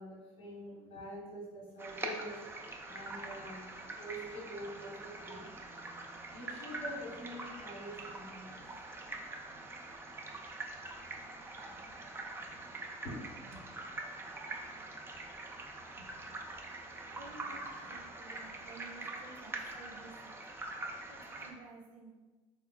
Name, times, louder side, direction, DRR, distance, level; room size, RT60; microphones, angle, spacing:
voice 1, 0.0-2.4 2.9-3.7 4.0-5.4 6.3-8.6 13.0-13.1, equal, 70° left, -8 dB, 1.1 m, -45 dB
sound 1, 1.8-21.5, right 2 dB, 15° right, 0.4 m, -44 dB
voice 2, 11.6-12.1 12.4-12.8 13.5-13.6 16.0-16.7 17.1-20.3 21.1-22.1, right 3 dB, 75° right, 0 dB, 0.5 m, -54 dB
3.5 x 2.4 x 2.2 m, 1.2 s
hypercardioid pair, 65°, 17 cm